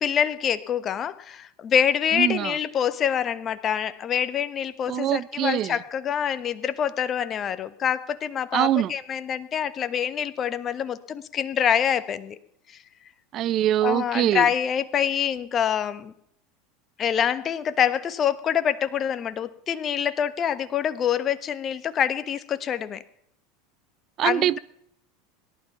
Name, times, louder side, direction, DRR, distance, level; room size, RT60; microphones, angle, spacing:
voice 1, 0.0-12.4 13.8-16.1 17.0-23.0 24.2-24.6, left 8 dB, 35° left, 13 dB, 1.3 m, -26 dB
voice 2, 2.1-2.6 4.9-5.8 8.5-8.9 13.3-14.5 24.2-24.6, right 12 dB, 45° right, 20 dB, 0.6 m, -23 dB
18.0 x 11.5 x 5.8 m, 0.72 s
hypercardioid pair, 90°, 0 cm